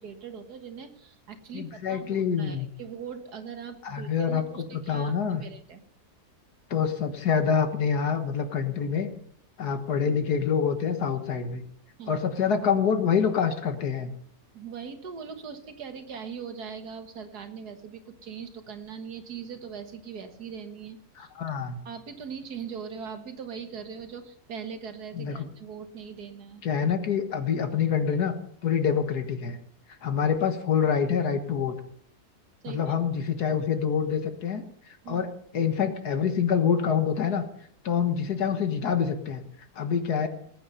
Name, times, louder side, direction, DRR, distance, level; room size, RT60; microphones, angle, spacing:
voice 1, 0.0-5.8 12.0-12.2 14.5-21.3 21.9-26.6 32.6-32.9 35.0-35.2, right 6 dB, 80° right, 7 dB, 2.0 m, -40 dB
voice 2, 1.5-2.7 3.8-4.4 4.7-5.4 6.7-9.1 9.6-11.6 12.1-14.1 21.2-21.8 25.1-25.5 26.6-28.3 28.6-29.6 30.0-31.8 32.7-34.6 35.1-35.3 35.5-37.4 37.9-39.5 39.8-40.3, left 7 dB, 80° left, 7 dB, 2.0 m, -26 dB
19.5 x 8.8 x 5.6 m, 0.65 s
omnidirectional pair, 1.7 m